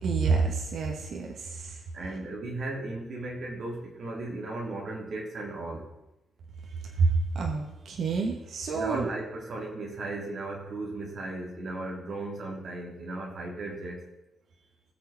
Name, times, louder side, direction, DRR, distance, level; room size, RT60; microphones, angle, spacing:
voice 1, 0.0-1.8 7.0-9.1, right 4 dB, 60° right, 0 dB, 2.0 m, -28 dB
voice 2, 1.9-5.9 8.7-14.0, right 2 dB, 45° right, -1 dB, 3.6 m, -36 dB
21.0 x 7.0 x 4.4 m, 0.92 s
wide cardioid pair, 165°, 0 cm